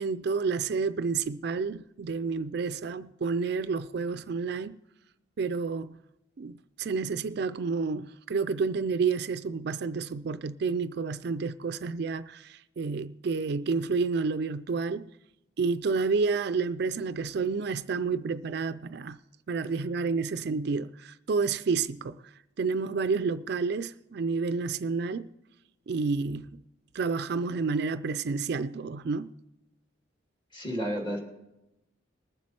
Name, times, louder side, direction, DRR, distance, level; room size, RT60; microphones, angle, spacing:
voice 1, 0.0-4.8 5.4-6.0 6.4-15.1 15.6-19.2 19.5-22.2 22.6-25.3 25.9-26.5 26.9-29.3, right 4 dB, 55° right, 0.4 m, -30 dB
voice 2, 30.5-31.2, equal, 25° left, 2.4 m, -31 dB
20.0 x 7.5 x 4.3 m
head